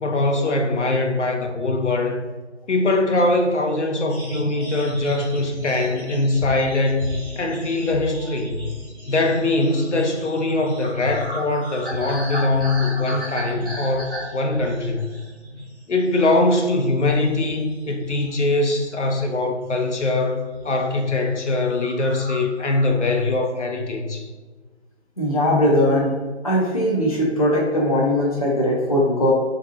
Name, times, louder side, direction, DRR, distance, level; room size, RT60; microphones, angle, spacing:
voice 1, 0.0-2.3 2.7-7.1 7.4-8.7 9.1-15.1 15.9-20.4 20.6-24.3, left 2 dB, 85° left, 3 dB, 0.6 m, -22 dB
sound 1, 4.1-15.8 16.1-16.4 16.8-18.3 18.6-19.4 19.9-20.2 20.4-20.8 21.1-21.2 21.5-21.6 21.8-23.2, equal, 20° right, 0.7 m, -34 dB
voice 2, 25.2-26.2 26.4-29.3, left 1 dB, 35° left, -4 dB, 0.5 m, -19 dB
3.9 x 2.5 x 2.6 m, 1.3 s
figure-of-eight pair, 155°, 34 cm